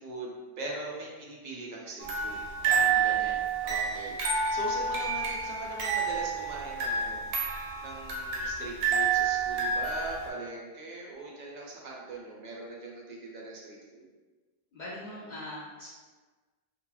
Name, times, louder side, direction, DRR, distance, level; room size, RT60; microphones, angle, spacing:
voice 1, 0.0-2.4 3.0-7.3 7.8-14.1, right 2 dB, 55° right, -3 dB, 0.6 m, -41 dB
sound 1, 2.0-10.3, right 5 dB, 90° right, 0.8 m, -29 dB
voice 2, 2.5-3.4 14.7-15.9, left 1 dB, 55° left, -9 dB, 0.6 m, -41 dB
2.3 x 2.2 x 3.0 m, 1.3 s
omnidirectional pair, 1.1 m